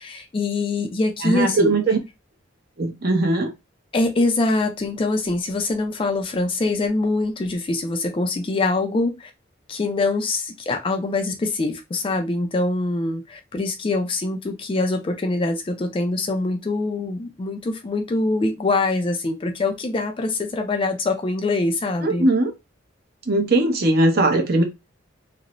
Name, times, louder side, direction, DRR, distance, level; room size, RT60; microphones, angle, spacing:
voice 1, 0.0-1.8 3.9-9.3 9.7-22.3, left 2 dB, 25° left, 0.3 m, -24 dB
voice 2, 1.2-2.0 2.8-3.5 22.0-22.5 23.3-24.6, right 2 dB, 50° right, 0.6 m, -19 dB
2.5 x 2.0 x 2.9 m
head